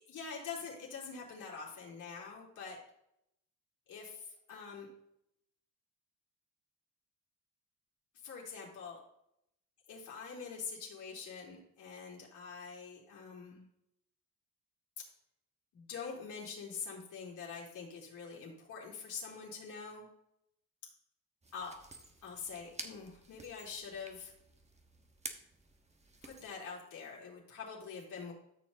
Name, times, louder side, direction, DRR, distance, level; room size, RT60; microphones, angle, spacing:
voice 1, 0.0-2.8 3.9-4.9 8.2-9.0 9.9-13.6 15.7-20.1 21.5-21.7 22.2-24.3 26.2-28.3, left 5 dB, 80° left, -3 dB, 3.4 m, -45 dB
sound 1, 21.4-26.5, right 2 dB, 20° right, 1.1 m, -51 dB
13.5 x 6.4 x 2.8 m, 0.76 s
cardioid pair, 90°, 30 cm